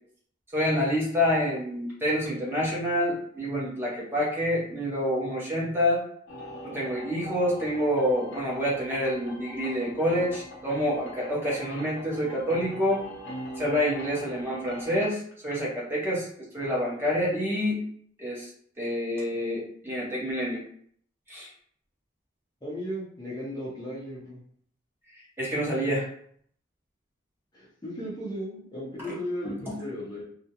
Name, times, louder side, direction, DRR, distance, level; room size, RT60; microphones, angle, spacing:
voice 1, 0.5-6.0 6.6-13.1 13.6-17.8 18.2-18.5 18.8-20.6 21.3-21.5 25.4-26.1 29.4-29.8, equal, 10° right, -6 dB, 0.7 m, -27 dB
sound 1, 6.3-15.0, equal, 70° left, 0.7 m, -42 dB
voice 2, 22.6-24.4 27.5-30.2, equal, 20° left, -6 dB, 0.6 m, -36 dB
2.3 x 2.0 x 2.8 m, 0.62 s
head